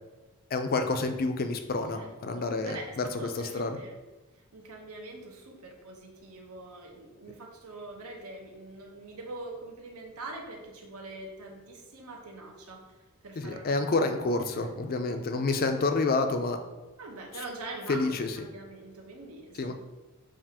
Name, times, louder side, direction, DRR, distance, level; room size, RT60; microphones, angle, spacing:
voice 1, 0.5-3.8 13.4-16.6 17.9-18.4 19.6-19.7, left 3 dB, 45° left, 7 dB, 0.4 m, -29 dB
voice 2, 1.9-3.9 4.5-12.8 13.2-14.7 17.0-19.7, right 2 dB, 85° right, 1 dB, 0.9 m, -44 dB
7.4 x 2.5 x 2.8 m, 1.1 s
head